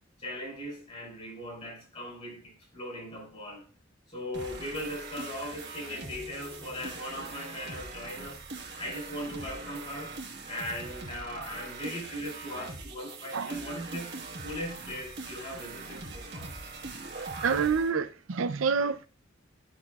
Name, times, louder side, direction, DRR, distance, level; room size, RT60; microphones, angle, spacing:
voice 1, 0.2-3.6 4.1-8.4 8.8-10.1 10.5-14.1 14.4-16.6, left 1 dB, 35° left, 4.2 m, -39 dB
sound 1, 4.3-17.9, right 3 dB, 60° right, 1.5 m, -42 dB
voice 2, 17.4-19.1, right 5 dB, 85° right, 0.6 m, -27 dB
12.0 x 5.9 x 2.4 m
head